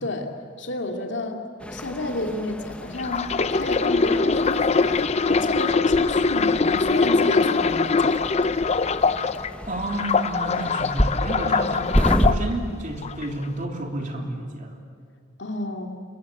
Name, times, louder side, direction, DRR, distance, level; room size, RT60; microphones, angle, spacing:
voice 1, 0.0-0.3 0.6-1.4 1.7-5.0 5.3-8.3 15.4-15.9, left 2 dB, 65° left, 3 dB, 2.5 m, -30 dB
sound 1, 1.6-12.3, equal, 5° left, 1.0 m, -30 dB
sound 2, 3.0-9.5 9.9-12.4 13.0-13.3, left 4 dB, 35° left, 0.6 m, -22 dB
voice 2, 9.7-14.8, right 1 dB, 40° right, 2 dB, 3.2 m, -31 dB
27.5 x 23.5 x 8.5 m, 2.1 s
head